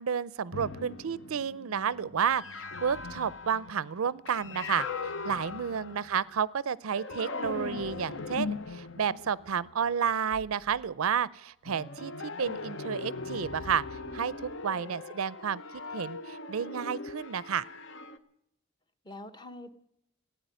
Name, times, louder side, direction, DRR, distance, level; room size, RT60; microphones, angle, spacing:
voice 1, 0.0-13.8 14.1-15.6 15.9-17.7, right 7 dB, 85° right, 21 dB, 0.5 m, -31 dB
sound 1, 0.5-6.4 6.9-10.9 11.7-18.2, left 4 dB, 65° left, 0.9 m, -40 dB
voice 2, 5.5-6.1 14.7-15.0 19.0-19.7, left 1 dB, 20° left, 10 dB, 0.9 m, -47 dB
15.5 x 9.4 x 9.4 m, 0.79 s
head